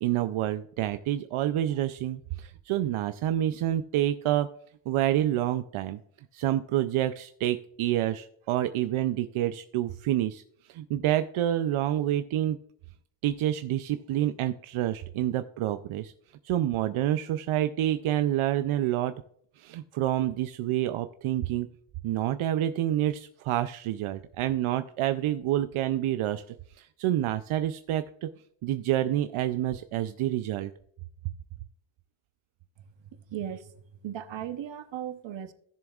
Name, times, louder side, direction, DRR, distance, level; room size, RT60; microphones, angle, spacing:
voice 1, 0.0-4.5 4.9-6.0 6.3-10.4 10.7-12.6 13.2-16.1 16.4-19.1 19.6-21.7 22.0-26.4 26.8-28.3 28.6-30.7, right 12 dB, 85° right, 0.5 m, -28 dB
voice 2, 33.1-33.7 34.0-35.5, right 10 dB, 65° right, 0.9 m, -37 dB
16.0 x 7.0 x 2.4 m
wide cardioid pair, 130°, 48 cm